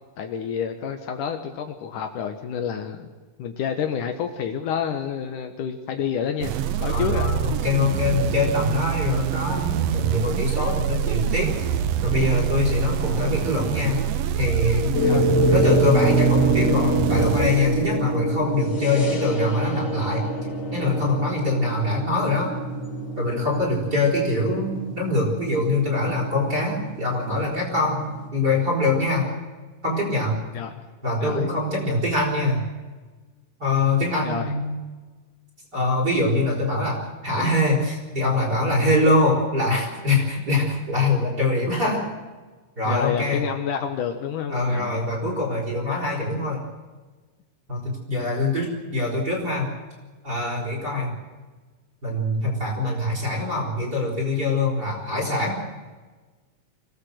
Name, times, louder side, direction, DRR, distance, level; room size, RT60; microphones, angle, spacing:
voice 1, 0.2-3.1 3.4-7.3 15.0-15.3 30.5-30.8 31.2-31.5 34.2-34.5 42.9-45.1, left 7 dB, 70° left, 6 dB, 2.6 m, -29 dB
sound 1, 6.4-18.3, right 9 dB, 90° right, 1.4 m, -26 dB
voice 2, 6.9-11.7 12.0-14.0 14.4-20.3 20.7-22.5 23.2-28.0 28.3-29.3 29.8-30.4 31.0-32.6 33.6-34.7 35.7-42.0 42.8-43.4 44.5-46.6 47.7-49.7 50.2-51.2 52.0-55.6, left 2 dB, 25° right, 0 dB, 5.2 m, -23 dB
sound 2, 14.9-28.3, right 1 dB, 45° left, 4.8 m, -25 dB
25.0 x 17.0 x 8.0 m, 1.3 s
omnidirectional pair, 4.0 m